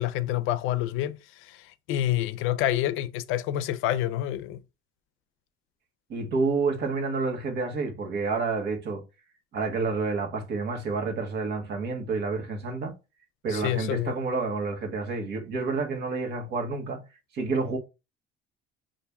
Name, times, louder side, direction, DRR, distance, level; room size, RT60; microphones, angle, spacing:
voice 1, 0.0-4.6 13.5-14.2, left 13 dB, 70° left, 0.5 m, -28 dB
voice 2, 6.1-9.0 9.5-12.9 13.4-17.0 17.3-17.8, right 4 dB, 55° right, 1.2 m, -29 dB
5.6 x 2.5 x 3.5 m
cardioid pair, 170°, 21 cm